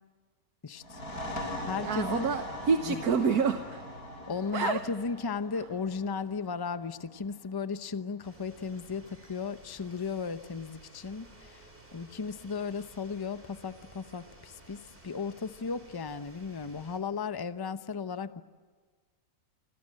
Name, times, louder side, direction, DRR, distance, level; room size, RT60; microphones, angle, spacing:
voice 1, 0.6-1.0 1.6-2.3 2.8-3.0 4.3-18.4, left 5 dB, 20° left, 11 dB, 0.6 m, -35 dB
sound 1, 0.8-8.2, left 1 dB, 90° left, 5.1 m, -41 dB
voice 2, 1.8-3.8 4.5-4.8, right 5 dB, 80° right, 8 dB, 1.6 m, -28 dB
sound 2, 8.2-17.0, right 1 dB, 35° right, 4.5 m, -55 dB
28.5 x 26.0 x 7.6 m, 1.5 s
omnidirectional pair, 1.6 m